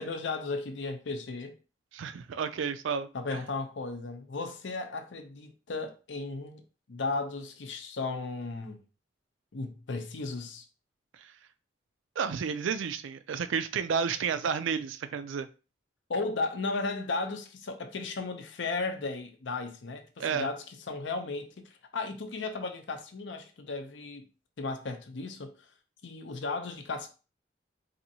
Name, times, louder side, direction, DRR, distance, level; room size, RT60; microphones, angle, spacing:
voice 1, 0.0-1.6 3.1-6.6 6.9-8.8 9.5-10.6 16.1-24.2 24.6-25.5 26.0-27.1, left 3 dB, 75° left, 0.6 m, -35 dB
voice 2, 1.9-3.1 12.2-15.5 20.2-20.5, right 6 dB, 90° right, 0.4 m, -31 dB
4.2 x 2.6 x 2.7 m
head